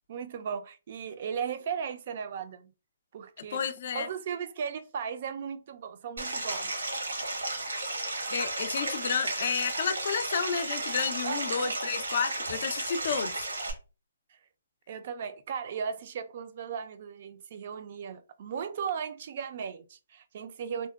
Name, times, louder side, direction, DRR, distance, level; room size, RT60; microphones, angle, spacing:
voice 1, 0.1-2.7 3.1-3.6 3.9-6.7 11.2-11.8 14.3-14.4 14.9-20.9, right 7 dB, 50° right, 0.3 m, -36 dB
voice 2, 3.5-4.1 8.3-13.4, left 6 dB, 55° left, 0.3 m, -31 dB
Stream, 6.2-13.7, right 2 dB, 85° right, 0.9 m, -33 dB
2.7 x 2.1 x 2.2 m
hypercardioid pair, 150°, 0 cm